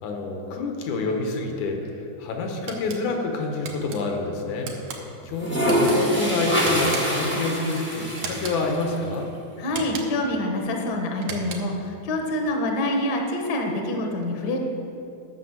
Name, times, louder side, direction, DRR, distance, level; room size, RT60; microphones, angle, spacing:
voice 1, 0.0-4.7 5.3-9.3, left 3 dB, 80° left, 3 dB, 2.4 m, -27 dB
sound 1, 2.7-3.0 3.6-4.0 4.6-5.0 5.6-6.0 6.6-7.3 8.2-8.6 9.7-10.3 11.2-11.8, right 5 dB, 75° right, 2.3 m, -36 dB
sound 2, 3.5-3.9 5.2-9.0, equal, 10° left, 0.7 m, -25 dB
voice 2, 9.6-14.6, left 1 dB, 55° left, 2 dB, 1.2 m, -26 dB
10.0 x 6.1 x 7.4 m, 2.7 s
omnidirectional pair, 3.4 m